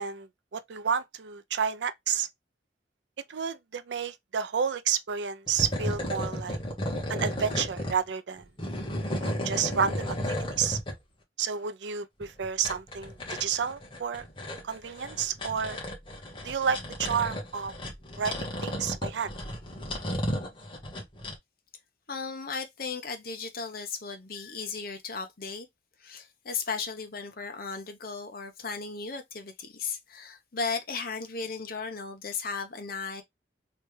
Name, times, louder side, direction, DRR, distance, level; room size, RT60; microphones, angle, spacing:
voice 1, 0.0-2.3 3.3-6.6 7.1-8.5 9.2-10.8 11.4-14.2 14.6-15.8 16.4-17.7 18.2-19.3, right 7 dB, 70° right, 0.5 m, -30 dB
sound 1, 5.5-8.0 8.4-10.9 12.2-21.4, equal, 25° left, 1.2 m, -34 dB
voice 2, 22.1-25.7 26.0-33.2, left 5 dB, 55° left, 0.9 m, -36 dB
3.3 x 3.2 x 3.1 m
head